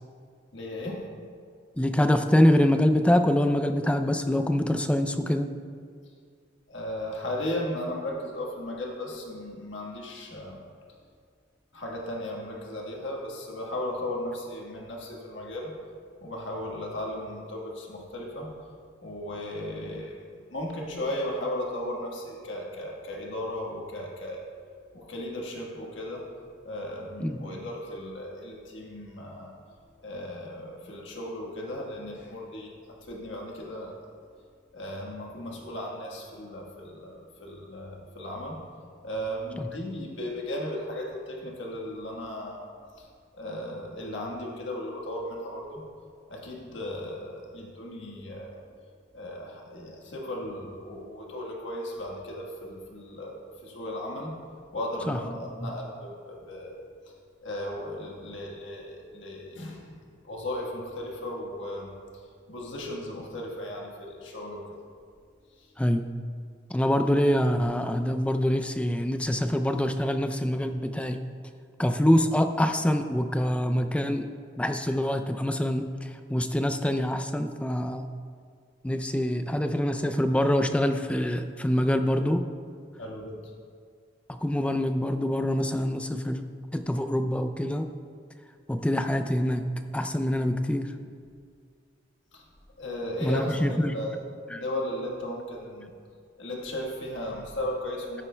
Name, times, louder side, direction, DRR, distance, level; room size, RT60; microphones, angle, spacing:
voice 1, 0.5-1.1 6.7-10.6 11.7-15.7 16.2-18.5 19.0-24.5 24.9-26.3 26.6-29.5 30.0-32.7 33.0-33.9 34.7-38.6 39.0-42.6 43.0-43.1 43.3-45.8 46.3-48.6 49.1-54.4 54.7-56.7 57.1-57.2 57.4-59.9 60.2-64.8 65.6-65.7 83.0-83.5 92.3-92.4 92.8-94.2 94.5-95.9 96.4-98.3, left 1 dB, 80° left, -2 dB, 1.4 m, -36 dB
voice 2, 1.8-5.5 27.2-27.5 39.6-39.7 55.1-55.2 55.6-55.7 65.8-66.1 66.7-71.2 71.8-74.3 74.6-78.1 78.8-82.5 84.3-86.4 86.7-87.9 88.7-89.6 89.9-90.9 93.2-94.0 94.5-94.6, left 1 dB, 5° left, 7 dB, 0.3 m, -25 dB
13.5 x 9.8 x 2.2 m, 2.1 s
head